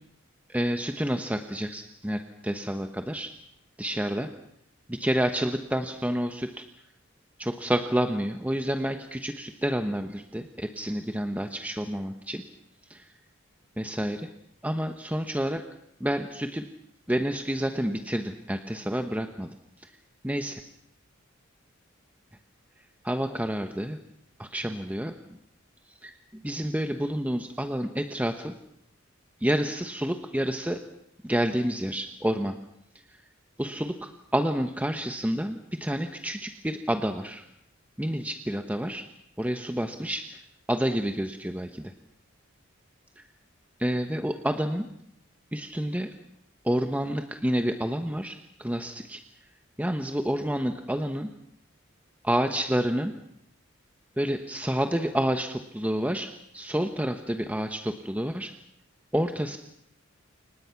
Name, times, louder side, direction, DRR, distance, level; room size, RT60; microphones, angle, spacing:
voice 1, 0.5-3.3 3.8-4.3 4.9-6.6 7.4-12.4 12.9-13.1 13.8-14.3 14.6-15.6 16.0-16.7 17.1-19.9 20.2-20.5 23.0-24.0 24.4-25.1 26.0-28.6 29.4-30.8 31.2-32.5 33.6-37.4 38.0-39.0 39.4-40.4 40.7-41.9 43.2-43.3 43.8-44.9 45.5-46.1 46.6-49.2 49.8-51.3 52.2-53.1 54.2-58.5 59.1-59.6, equal, 10° right, 6 dB, 1.1 m, -29 dB
29.0 x 25.0 x 5.9 m, 0.73 s
head